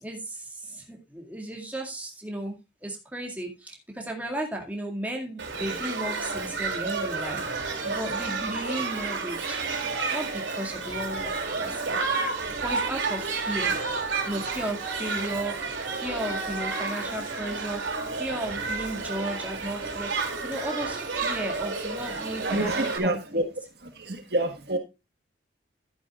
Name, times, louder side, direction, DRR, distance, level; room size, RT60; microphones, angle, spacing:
voice 1, 0.0-9.6 10.1-11.3 11.6-12.0 12.6-13.8 14.1-20.1 20.4-23.5, right 1 dB, 10° right, 0 dB, 2.1 m, -35 dB
Shout / Human group actions, 5.4-23.0, right 4 dB, 85° right, 3.1 m, -31 dB
voice 2, 22.4-23.4 23.8-24.8, right 1 dB, 60° right, 6 dB, 1.6 m, -28 dB
12.0 x 10.0 x 2.4 m, 0.25 s
head